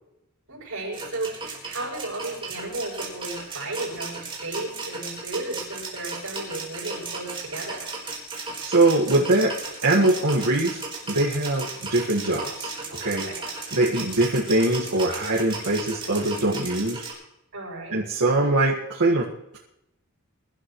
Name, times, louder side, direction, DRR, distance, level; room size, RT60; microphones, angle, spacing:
voice 1, 0.5-7.9 13.1-13.4 17.5-18.0, right 2 dB, 65° right, -9 dB, 7.3 m, -34 dB
sound 1, 0.9-17.1, right 3 dB, 25° right, 4.1 m, -35 dB
voice 2, 8.4-9.5 9.8-12.8 13.0-13.2 13.7-17.1 17.9-19.3, right 2 dB, 90° right, -5 dB, 1.8 m, -22 dB
23.5 x 12.0 x 3.1 m, 0.82 s
head